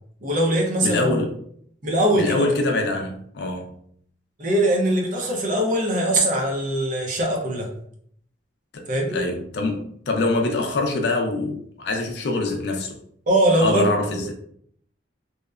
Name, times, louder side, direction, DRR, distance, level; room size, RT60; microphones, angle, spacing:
voice 1, 0.2-1.2 1.8-2.5 4.4-7.7 8.9-9.3 13.3-14.3, right 1 dB, 45° right, 0.6 m, -22 dB
voice 2, 0.8-1.3 2.1-3.7 8.7-13.0 13.6-14.3, left 2 dB, 65° left, 0.4 m, -24 dB
2.8 x 2.1 x 2.3 m
head